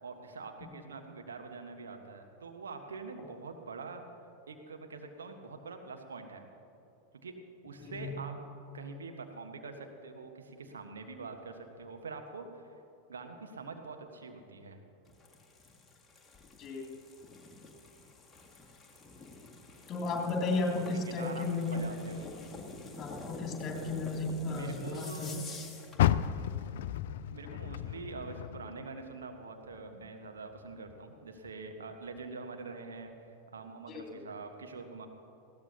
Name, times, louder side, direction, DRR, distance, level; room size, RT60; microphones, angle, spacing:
voice 1, 0.0-4.0 4.5-6.5 7.2-7.3 7.6-8.3 8.7-12.7 13.1-14.8 20.9-22.3 24.5-25.5 27.3-35.1, right 4 dB, 70° right, 4 dB, 1.2 m, -45 dB
voice 2, 7.8-8.1 16.6-16.9 19.9-21.7 22.9-25.3 33.9-34.2, left 3 dB, 25° left, 0 dB, 2.7 m, -34 dB
sound 1, 15.1-26.0, left 3 dB, 5° left, 2.0 m, -48 dB
Car, 25.9-29.2 29.6-31.0 31.5-31.6 32.2-32.3, left 12 dB, 55° left, 0.4 m, -32 dB
19.5 x 16.0 x 2.8 m, 2.9 s
figure-of-eight pair, 90°, 0 cm